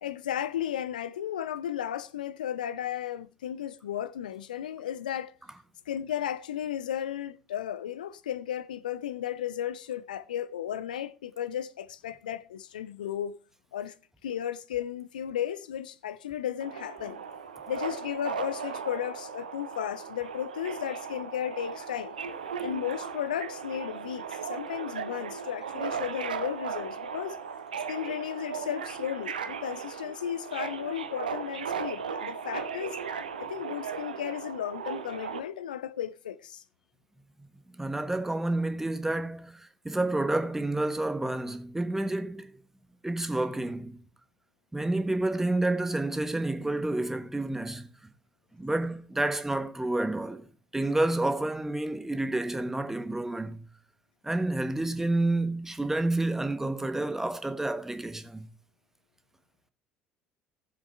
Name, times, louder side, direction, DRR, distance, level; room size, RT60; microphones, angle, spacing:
voice 1, 0.0-5.3 5.9-13.4 13.7-14.0 14.2-17.2 17.7-22.2 22.6-27.4 27.9-33.0 33.4-36.6, left 10 dB, 75° left, 0.5 m, -34 dB
Subway metro underground, 16.6-35.4, right 6 dB, 75° right, 0.8 m, -37 dB
voice 2, 37.8-42.5 43.0-44.0 44.7-47.9 48.6-50.5 50.7-53.7 54.2-58.5, right 2 dB, 10° right, 1.2 m, -29 dB
16.5 x 7.3 x 3.3 m
figure-of-eight pair, 60°, 5 cm